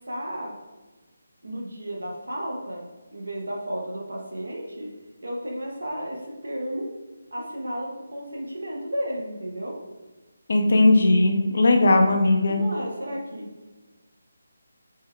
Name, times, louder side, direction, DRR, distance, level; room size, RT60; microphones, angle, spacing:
voice 1, 0.1-0.6 1.4-2.8 3.1-4.9 5.2-6.9 7.3-9.8 12.5-13.5, equal, 85° right, -1 dB, 0.8 m, -33 dB
voice 2, 10.5-12.6, left 2 dB, 60° left, 4 dB, 0.5 m, -18 dB
3.2 x 2.2 x 3.4 m, 1.2 s
figure-of-eight pair, 160°, 0 cm